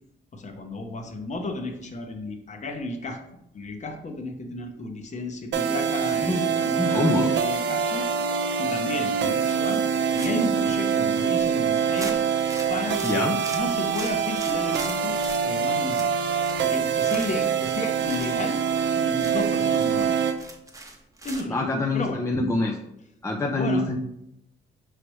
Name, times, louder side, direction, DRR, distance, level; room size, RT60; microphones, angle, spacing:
voice 1, 0.3-3.2 3.5-9.9 10.1-12.2 12.7-15.2 15.4-16.1 16.6-20.1 21.2-21.7 21.9-22.2 23.5-23.9, left 2 dB, 35° left, 4 dB, 0.7 m, -33 dB
sound 1, 5.5-20.4, right 7 dB, 65° right, 0.5 m, -25 dB
voice 2, 6.8-7.3 13.0-13.4 21.5-22.8 23.2-24.0, left 2 dB, 15° left, 2 dB, 0.4 m, -25 dB
sound 2, 10.1-10.6 11.0-11.1 11.4-11.5 11.9-15.4 15.8-16.7 16.9-17.5 18.0-18.3 18.8-18.9 19.1-21.5, right 2 dB, 15° right, 0.7 m, -40 dB
5.0 x 3.2 x 3.1 m, 0.80 s
cardioid pair, 90°, 20 cm